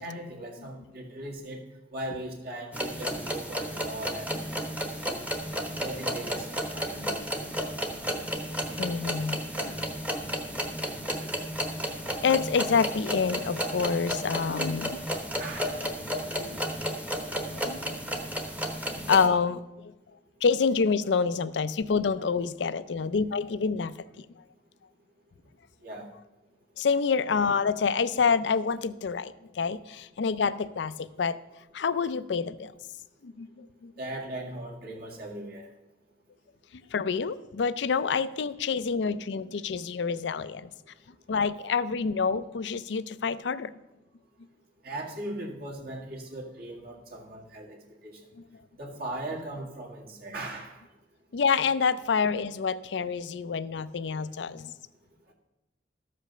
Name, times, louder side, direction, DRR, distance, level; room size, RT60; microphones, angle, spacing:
voice 1, 0.0-1.6 1.9-4.4 5.0-5.3 5.8-7.1 15.4-15.8 25.8-26.1 34.0-35.7 44.8-47.8 48.0-48.2 48.8-50.7, right 1 dB, 60° right, -1 dB, 1.9 m, -38 dB
sound 1, 2.7-19.3, equal, 10° right, 1.0 m, -33 dB
voice 2, 8.8-9.7 12.2-15.0 15.7-16.6 17.3-17.9 19.1-19.9 20.4-24.3 26.8-31.4 31.7-32.7 33.2-33.9 36.7-40.7 41.3-43.8 51.3-54.7, left 5 dB, 75° left, 15 dB, 0.5 m, -28 dB
13.0 x 5.1 x 6.7 m, 1.0 s
head